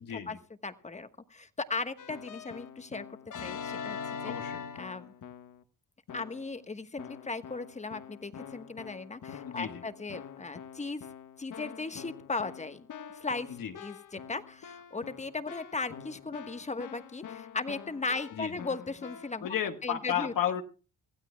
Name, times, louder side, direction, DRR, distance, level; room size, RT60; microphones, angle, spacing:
voice 1, 0.0-0.4 4.2-4.6 9.4-9.8 13.5-13.7 18.3-18.6 19.4-20.6, left 9 dB, 85° left, 6 dB, 1.6 m, -33 dB
voice 2, 0.6-3.1 3.4-4.0 4.2-4.3 4.8-5.1 6.1-11.0 11.4-12.9 13.2-19.4 19.8-20.3, left 3 dB, 20° left, 10 dB, 1.2 m, -37 dB
Keyboard (musical), 2.0-5.6 6.1-6.6 7.0-19.5, left 7 dB, 65° left, 1.3 m, -44 dB
26.0 x 16.0 x 2.2 m, 0.35 s
cardioid pair, 115°, 33 cm